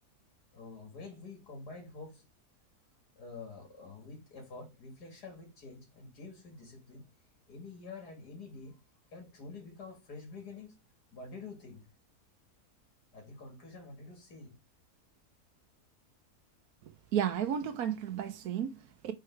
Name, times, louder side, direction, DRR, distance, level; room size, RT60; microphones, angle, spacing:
voice 1, 0.5-2.2 3.2-7.1 7.5-8.8 9.1-10.8 11.1-11.8 13.1-14.6, left 3 dB, 90° left, 2.6 m, -48 dB
voice 2, 17.1-19.1, right 9 dB, 70° right, 1.2 m, -33 dB
4.7 x 4.7 x 4.5 m
omnidirectional pair, 1.7 m